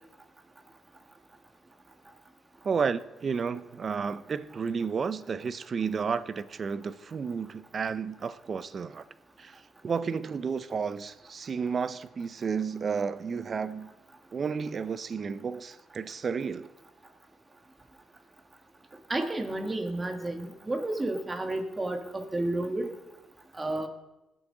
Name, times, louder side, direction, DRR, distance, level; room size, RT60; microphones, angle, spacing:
voice 1, 2.6-9.0 9.4-13.9 14.3-16.7, right 5 dB, 45° right, 15 dB, 0.6 m, -32 dB
voice 2, 19.1-22.9 23.6-23.9, right 2 dB, 20° right, 5 dB, 1.8 m, -31 dB
21.0 x 7.9 x 3.9 m, 1.0 s
cardioid pair, 90°, 0 cm